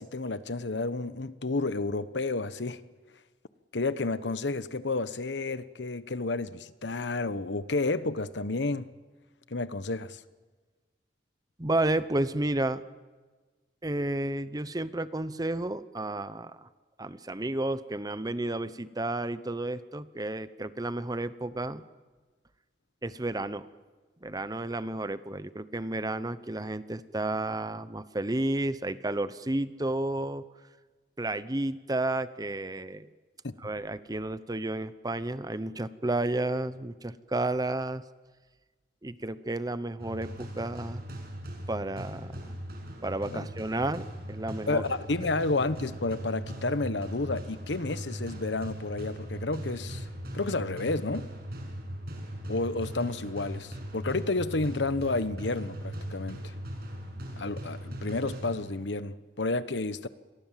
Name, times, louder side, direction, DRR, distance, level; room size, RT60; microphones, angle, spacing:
voice 1, 0.0-2.8 3.7-8.9 9.5-10.2 33.4-33.5 43.3-43.5 44.7-50.1 50.3-51.3 52.5-56.4 57.4-60.1, left 3 dB, 80° left, 1.1 m, -31 dB
voice 2, 11.6-12.8 13.8-16.7 17.0-21.8 23.0-23.7 24.2-30.4 31.2-33.1 33.6-38.0 39.0-41.0 41.7-42.5 43.0-44.8, right 2 dB, 20° right, 0.9 m, -32 dB
sound 1, 40.0-59.0, equal, 60° right, 6.7 m, -39 dB
28.5 x 22.5 x 7.5 m
head